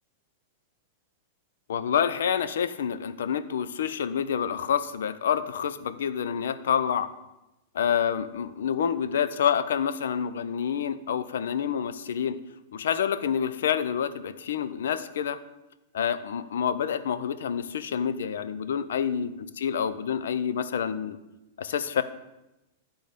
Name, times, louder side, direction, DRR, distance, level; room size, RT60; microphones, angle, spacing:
voice 1, 1.7-7.1 7.7-12.4 12.7-15.4 15.9-21.2 21.6-22.0, left 8 dB, 80° left, 12 dB, 0.5 m, -28 dB
10.5 x 3.9 x 5.1 m, 0.97 s
hypercardioid pair, 120°, 0 cm